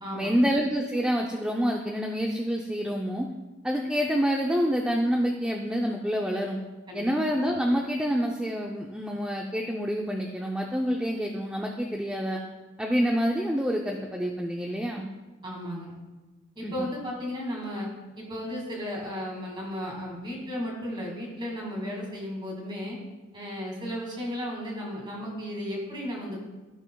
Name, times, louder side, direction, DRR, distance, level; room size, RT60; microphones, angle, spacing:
voice 1, 0.1-3.3 3.6-6.6 6.9-12.4 12.8-15.1 16.6-16.9, equal, 5° right, 0 dB, 0.4 m, -27 dB
voice 2, 15.4-15.9 16.6-17.9 18.2-23.0 23.3-26.4, equal, 25° right, -2 dB, 2.1 m, -34 dB
14.0 x 6.0 x 2.3 m, 1.2 s
head